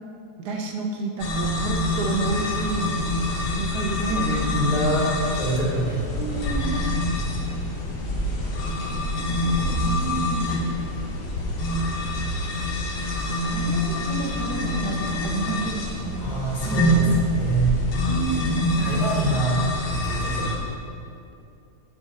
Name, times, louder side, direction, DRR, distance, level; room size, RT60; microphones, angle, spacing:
voice 1, 0.4-3.0 3.6-4.6 5.9-6.8 8.1-8.2 9.1-10.5 13.4-16.3 16.6-17.1 18.0-19.4, right 4 dB, 75° right, 2 dB, 1.5 m, -31 dB
sound 1, 1.2-20.6, left 1 dB, 75° left, 1.7 m, -26 dB
voice 2, 4.1-6.2 16.2-17.8 18.8-19.6 19.9-20.5, right 1 dB, 55° left, -6 dB, 2.6 m, -25 dB
8.5 x 7.3 x 4.2 m, 2.5 s
omnidirectional pair, 1.8 m